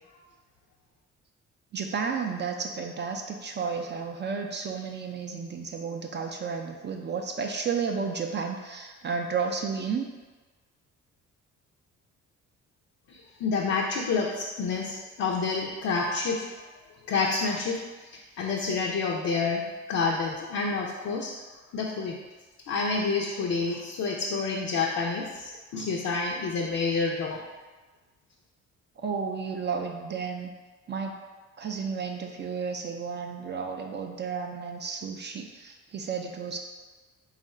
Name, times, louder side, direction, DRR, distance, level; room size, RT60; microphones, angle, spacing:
voice 1, 1.7-10.1 29.0-30.5 30.9-31.2 31.6-36.6, right 5 dB, 35° right, 3 dB, 0.4 m, -32 dB
voice 2, 13.1-16.5 17.1-17.8 18.1-21.3 21.7-22.2 22.7-27.4, left 4 dB, 60° left, -2 dB, 0.5 m, -28 dB
3.7 x 2.4 x 4.1 m, 1.3 s
cardioid pair, 90°, 30 cm